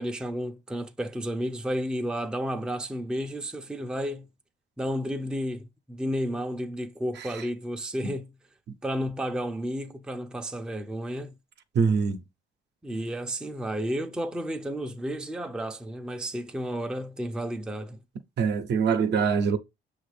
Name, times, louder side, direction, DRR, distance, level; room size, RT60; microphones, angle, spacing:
voice 1, 0.0-4.3 4.8-8.3 8.8-11.3 12.8-18.0, equal, 5° right, 0.4 m, -32 dB
voice 2, 11.7-12.2 18.4-19.6, right 6 dB, 60° right, 0.6 m, -24 dB
5.9 x 2.5 x 3.2 m
cardioid pair, 90°, 20 cm